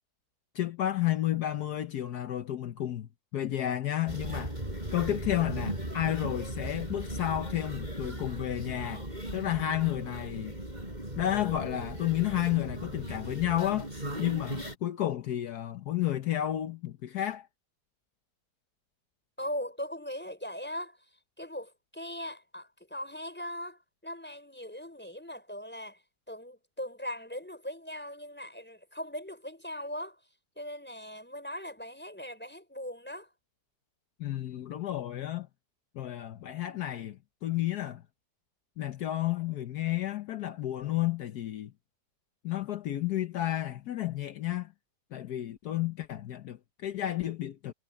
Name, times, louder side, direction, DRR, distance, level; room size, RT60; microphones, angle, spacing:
voice 1, 0.5-4.5 4.9-10.5 11.2-13.9 14.2-17.5 34.2-35.5 35.9-38.0 38.8-41.7 42.4-44.7 45.1-47.7, left 13 dB, 70° left, 1.4 m, -31 dB
sound 1, 4.1-14.7, right 1 dB, 25° right, 6.1 m, -37 dB
voice 2, 19.4-21.1 21.4-30.2 30.6-33.3, equal, 5° left, 5.3 m, -40 dB
omnidirectional pair, 1.7 m